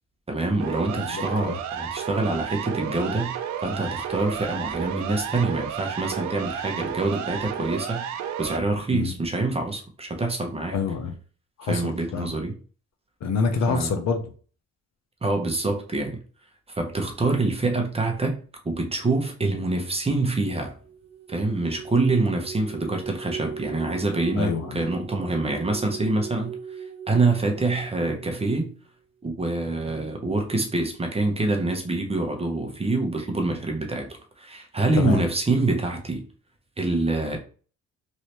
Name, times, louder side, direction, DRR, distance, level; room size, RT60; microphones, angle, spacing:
voice 1, 0.3-3.3 3.6-8.0 8.4-10.8 11.6-12.5 13.7-13.9 15.2-16.2 16.7-18.4 18.6-20.8 21.3-28.7 29.2-34.1 34.4-36.2 36.8-37.4, right 2 dB, 20° right, 0.8 m, -26 dB
Siren, 0.6-8.6, right 9 dB, 70° right, 0.5 m, -32 dB
voice 2, 0.9-1.6 8.9-9.1 10.7-11.1 11.6-11.8 12.1-12.3 13.2-14.2 24.4-24.9 35.0-35.2, left 5 dB, 60° left, 0.7 m, -26 dB
sound 1, 20.8-28.7, right 7 dB, 50° right, 1.0 m, -39 dB
3.2 x 2.7 x 2.9 m
cardioid pair, 90°, 30 cm